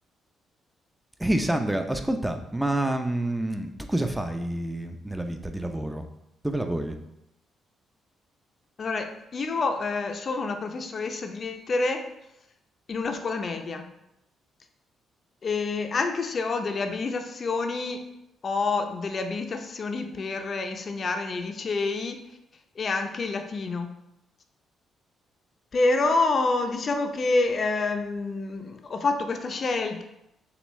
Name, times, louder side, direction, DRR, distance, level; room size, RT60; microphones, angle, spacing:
voice 1, 1.2-6.0 6.4-7.0, right 1 dB, 5° right, 6 dB, 0.5 m, -28 dB
voice 2, 8.8-12.1 12.9-13.8 15.4-18.1 18.4-22.2 22.8-23.9 25.7-30.0, left 3 dB, 45° left, 6 dB, 0.6 m, -27 dB
6.8 x 2.4 x 3.1 m, 0.84 s
cardioid pair, 90°, 0 cm